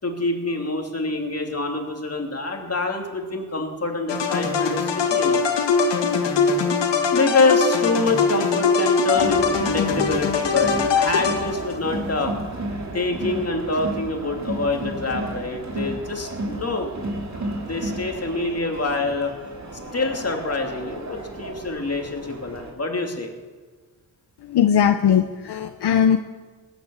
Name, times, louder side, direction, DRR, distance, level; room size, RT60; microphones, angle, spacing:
voice 1, 0.0-5.4 7.1-12.3 12.9-16.9 17.6-19.3 19.9-23.3, left 3 dB, 35° left, 2 dB, 2.9 m, -26 dB
sound 1, 4.1-11.8, left 5 dB, 90° left, 2.1 m, -21 dB
Crowd, 9.1-22.7, right 2 dB, 40° right, 3.2 m, -33 dB
voice 2, 24.4-26.2, left 8 dB, 70° left, 8 dB, 0.8 m, -19 dB
18.5 x 10.5 x 7.4 m, 1.4 s
cardioid pair, 80°, 41 cm